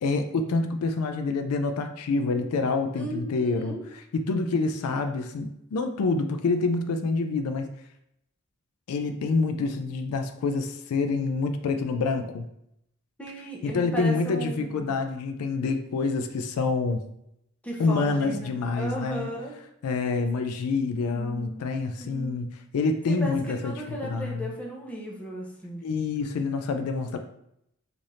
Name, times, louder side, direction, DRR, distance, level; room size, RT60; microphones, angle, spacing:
voice 1, 0.0-3.8 4.1-7.7 8.9-12.5 13.6-17.0 17.8-19.3 19.8-23.7 24.0-24.5 25.8-27.2, left 3 dB, 75° left, 7 dB, 0.4 m, -27 dB
voice 2, 2.9-3.8 13.2-15.0 17.6-19.5 21.1-21.6 22.0-22.5 23.0-25.8, equal, 5° left, -3 dB, 0.7 m, -36 dB
3.3 x 2.5 x 4.0 m, 0.79 s
head